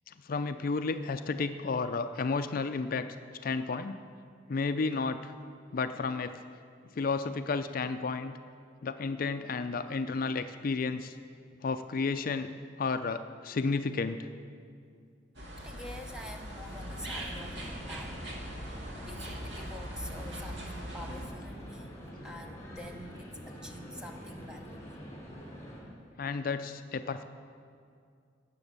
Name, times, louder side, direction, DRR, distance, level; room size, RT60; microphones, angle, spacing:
voice 1, 0.1-3.1 3.4-4.0 4.5-5.3 5.7-6.3 6.9-8.3 8.8-11.2 11.6-12.5 12.8-14.3 26.2-27.2, left 4 dB, 50° left, 10 dB, 0.4 m, -32 dB
sound 1, 15.3-21.2, equal, 70° right, 2.0 m, -41 dB
voice 2, 15.6-18.2 18.6-22.0 22.2-25.0, equal, 5° right, 4 dB, 0.9 m, -47 dB
sound 2, 16.7-25.8, equal, 20° left, 3.4 m, -46 dB
17.5 x 7.1 x 6.7 m, 2.3 s
head